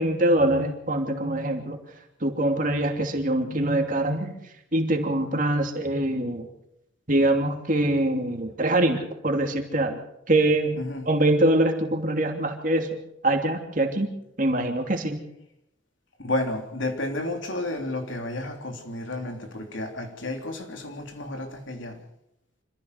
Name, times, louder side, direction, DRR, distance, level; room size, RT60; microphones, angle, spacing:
voice 1, 0.0-1.8 2.2-4.3 4.7-6.5 7.1-10.0 10.3-12.9 13.2-14.1 14.4-15.2, right 1 dB, 40° right, 2.8 m, -24 dB
voice 2, 10.7-11.1 16.2-22.0, left 2 dB, 75° left, 3.4 m, -31 dB
26.0 x 15.0 x 6.8 m
head